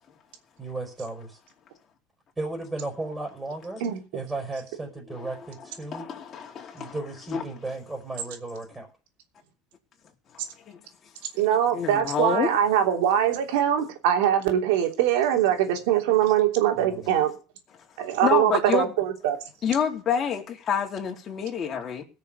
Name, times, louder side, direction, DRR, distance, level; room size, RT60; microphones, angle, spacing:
voice 1, 0.6-1.4 2.4-3.8 4.1-6.0 6.7-8.9 16.7-17.1, right 2 dB, 10° right, 4.9 m, -35 dB
voice 2, 5.9-7.0 7.3-7.4 10.7-10.8 11.7-12.5 18.0-18.9 19.6-22.0, left 7 dB, 40° left, 3.8 m, -28 dB
voice 3, 11.3-17.3 18.0-19.4, right 10 dB, 80° right, 3.1 m, -22 dB
18.0 x 6.6 x 6.9 m
supercardioid pair, 110°, 0 cm